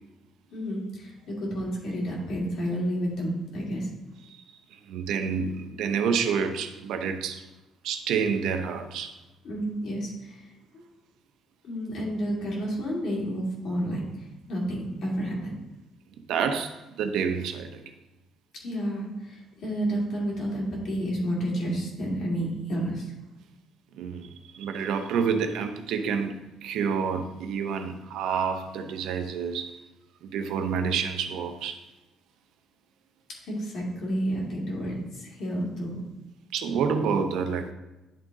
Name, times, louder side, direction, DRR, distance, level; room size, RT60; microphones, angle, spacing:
voice 1, 0.5-3.9 9.4-10.8 11.6-15.5 18.6-23.1 33.4-36.0, equal, 60° left, -3 dB, 2.6 m, -30 dB
voice 2, 4.9-7.4 7.8-9.1 16.3-17.8 24.0-24.3 24.5-29.7 30.2-31.8 36.5-37.7, right 6 dB, 80° right, 7 dB, 0.7 m, -28 dB
10.5 x 3.9 x 3.6 m, 1.0 s
cardioid pair, 110°, 0 cm